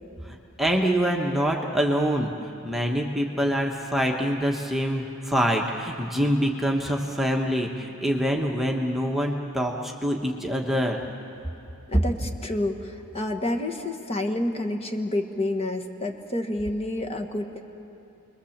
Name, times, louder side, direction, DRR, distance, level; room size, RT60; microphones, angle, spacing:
voice 1, 0.3-11.0, equal, ahead, 0 dB, 1.3 m, -25 dB
voice 2, 11.9-17.6, left 1 dB, 30° left, 3 dB, 1.5 m, -29 dB
29.5 x 21.5 x 7.3 m, 3.0 s
head